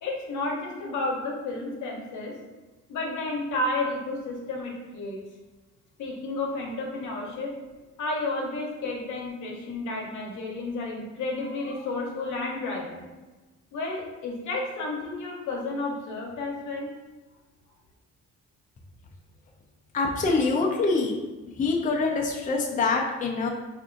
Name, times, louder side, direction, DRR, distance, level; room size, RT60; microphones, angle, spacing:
voice 1, 0.0-2.3 2.9-5.2 6.0-7.5 8.0-13.0 13.7-16.9, left 2 dB, 75° left, -1 dB, 0.8 m, -31 dB
voice 2, 19.9-21.2 21.6-23.5, left 3 dB, 25° left, 0 dB, 0.4 m, -25 dB
3.5 x 2.5 x 2.5 m, 1.2 s
cardioid pair, 90°, 30 cm